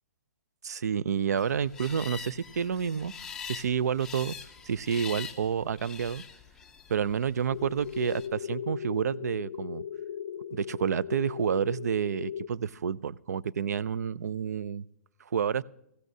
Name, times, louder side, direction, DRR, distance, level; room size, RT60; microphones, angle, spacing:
voice 1, 0.6-3.1 3.4-4.4 4.6-6.2 6.9-9.8 10.5-14.8 15.3-15.6, right 7 dB, 85° right, 20 dB, 0.4 m, -29 dB
sound 1, 1.4-8.3, left 6 dB, 5° left, 0.5 m, -44 dB
sound 2, 7.5-12.5, left 8 dB, 50° left, 0.5 m, -38 dB
22.5 x 15.0 x 2.7 m, 0.79 s
hypercardioid pair, 165°, 9 cm